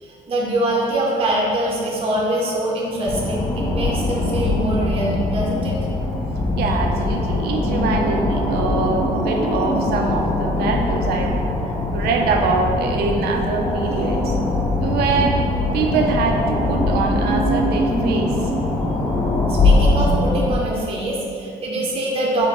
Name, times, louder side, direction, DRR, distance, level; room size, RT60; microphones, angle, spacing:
voice 1, 0.0-5.8 19.5-22.5, right 1 dB, 35° right, -3 dB, 0.7 m, -23 dB
sound 1, 3.1-20.5, left 2 dB, 20° left, 0.5 m, -21 dB
voice 2, 6.6-11.4 11.9-14.4 14.8-15.4 15.7-18.3, right 4 dB, 70° right, 2 dB, 0.5 m, -23 dB
4.4 x 2.2 x 4.2 m, 2.4 s
cardioid pair, 110°, 17 cm